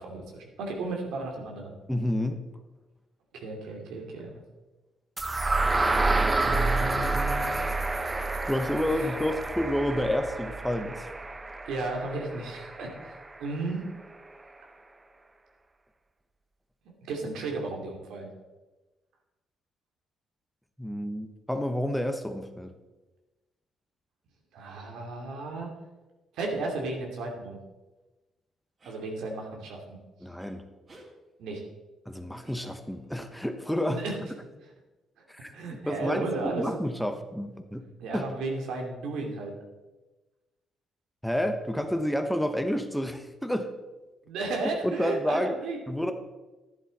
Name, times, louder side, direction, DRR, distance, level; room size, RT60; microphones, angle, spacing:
voice 1, 0.0-1.7 3.3-4.3 6.4-7.5 11.6-13.9 17.1-18.3 24.5-25.7 26.3-27.6 28.8-29.8 31.4-31.6 33.9-34.2 35.5-36.7 38.0-39.6 44.2-45.8, right 3 dB, 85° right, 1 dB, 2.6 m, -34 dB
voice 2, 1.9-2.4 8.4-11.1 20.8-22.7 30.2-30.6 32.1-34.0 35.3-35.6 35.9-37.9 38.1-38.2 41.2-43.7 44.8-45.6 45.9-46.1, left 1 dB, 5° left, 7 dB, 1.0 m, -29 dB
sound 1, 5.2-13.1, right 2 dB, 20° right, 0.8 m, -28 dB
sound 2, 28.8-29.1 30.4-30.5 30.9-31.1 32.4-33.1, right 1 dB, 40° right, 3.5 m, -52 dB
11.5 x 10.5 x 4.2 m, 1.1 s
cardioid pair, 90°, 0 cm